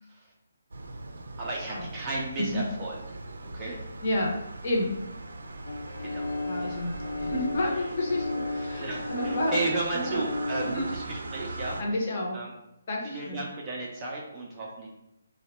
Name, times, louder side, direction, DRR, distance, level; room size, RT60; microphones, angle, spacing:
sound 1, 0.7-11.8, right 2 dB, 85° right, 0.4 m, -40 dB
voice 1, 1.4-3.0 3.5-3.8 6.0-6.3 6.6-6.8 7.0-7.1 8.8-11.8 12.3-12.5 13.1-14.9, right 2 dB, 15° right, -4 dB, 0.3 m, -34 dB
voice 2, 3.6-4.3 4.6-5.0 6.4-6.9 7.2-9.6 9.9-10.2 10.6-10.9 11.8-12.4 12.9-13.4, left 1 dB, 30° left, -1 dB, 0.6 m, -30 dB
sound 2, 5.7-10.7, left 2 dB, 85° left, 0.5 m, -34 dB
Wind instrument woodwind instrument, 5.9-10.1, left 3 dB, 60° left, 1.0 m, -50 dB
3.1 x 2.1 x 4.2 m, 0.88 s
hypercardioid pair, 175°, 0 cm